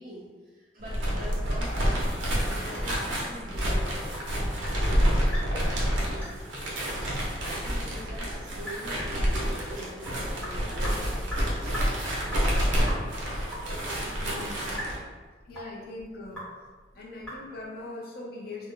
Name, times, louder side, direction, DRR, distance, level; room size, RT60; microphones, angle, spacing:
voice 1, 0.0-5.2 5.9-6.4 7.4-13.4, equal, 50° right, -6 dB, 0.9 m, -44 dB
sound 1, 0.8-15.0, equal, 85° right, 0.7 m, -28 dB
Sink (filling or washing) / Drip, 3.3-17.8, equal, 5° left, 0.9 m, -43 dB
voice 2, 14.2-14.6 15.4-16.4 16.9-18.7, left 2 dB, 50° left, -3 dB, 0.5 m, -41 dB
2.4 x 2.0 x 3.6 m, 1.4 s
head